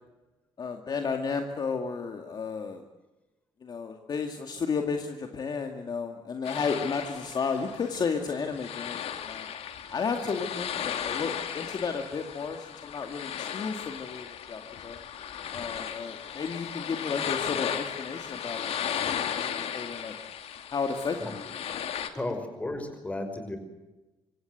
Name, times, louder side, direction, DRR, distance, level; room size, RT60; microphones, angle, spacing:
voice 1, 0.6-2.8 3.6-9.5 9.9-15.0 15.5-18.7 19.0-20.1 20.7-21.5, left 5 dB, 40° left, 4 dB, 2.2 m, -33 dB
sound 1, 6.4-22.1, left 9 dB, 70° left, 2.5 m, -36 dB
voice 2, 22.1-23.6, left 2 dB, 10° left, 7 dB, 5.4 m, -34 dB
26.0 x 24.5 x 8.1 m, 1.1 s
cardioid pair, 150°, 11 cm